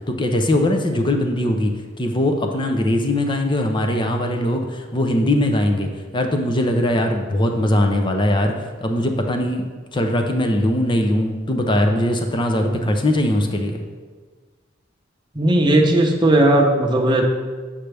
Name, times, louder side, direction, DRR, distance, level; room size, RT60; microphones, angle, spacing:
voice 1, 0.1-1.7 2.0-13.8, left 1 dB, 25° left, 4 dB, 0.6 m, -20 dB
voice 2, 15.3-17.2, right 1 dB, 25° right, 1 dB, 0.8 m, -16 dB
7.4 x 6.7 x 3.4 m, 1.4 s
head